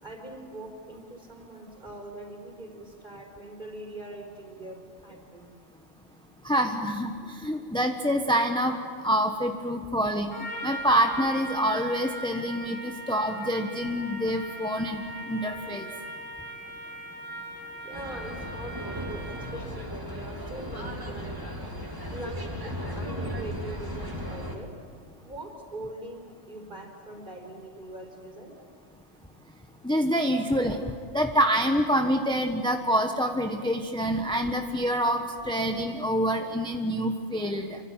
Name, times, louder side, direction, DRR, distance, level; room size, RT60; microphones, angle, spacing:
voice 1, 0.0-5.5 17.8-21.4 22.1-24.8 25.2-28.7, right 1 dB, 40° right, 2 dB, 4.9 m, -42 dB
voice 2, 6.4-10.3 10.6-15.9 29.8-30.8 31.1-37.8, equal, 5° left, 4 dB, 1.2 m, -26 dB
Trumpet, 10.3-19.7, right 1 dB, 85° left, 5.8 m, -40 dB
sound 1, 17.9-24.6, equal, 15° right, 3.0 m, -36 dB
26.5 x 25.0 x 8.9 m, 2.1 s
omnidirectional pair, 1.3 m